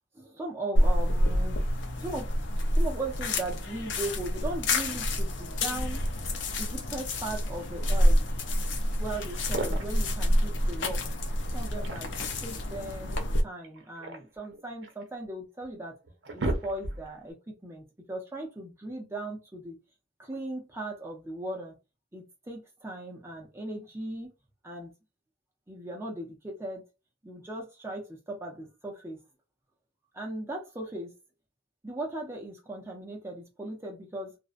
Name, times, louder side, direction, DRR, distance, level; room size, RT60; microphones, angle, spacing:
voice 1, 0.1-1.6 2.0-2.3 2.7-6.0 6.6-8.2 9.0-11.1 11.5-16.0 16.3-19.8 20.2-21.7 22.1-24.3 24.6-24.9 25.7-26.9 27.2-29.2 30.1-31.1 31.8-34.4, right 1 dB, 15° right, 0.5 m, -38 dB
sound 1, 0.8-13.4, equal, 70° left, 0.5 m, -27 dB
sound 2, 9.3-10.1 11.5-12.4 13.6-15.0 15.6-15.7 16.0-17.2, right 2 dB, 75° right, 0.6 m, -35 dB
2.5 x 2.1 x 2.4 m
head